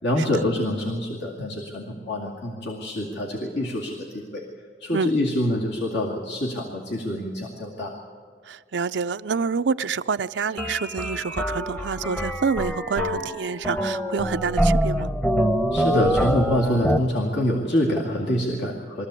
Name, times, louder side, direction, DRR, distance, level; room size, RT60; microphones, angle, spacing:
voice 1, 0.0-4.4 4.8-7.9 15.7-19.1, left 1 dB, 70° left, 2.3 m, -26 dB
voice 2, 8.5-15.1, right 5 dB, 80° right, 0.5 m, -27 dB
sound 1, 10.6-17.0, equal, 10° left, 0.9 m, -25 dB
22.5 x 14.5 x 8.2 m
head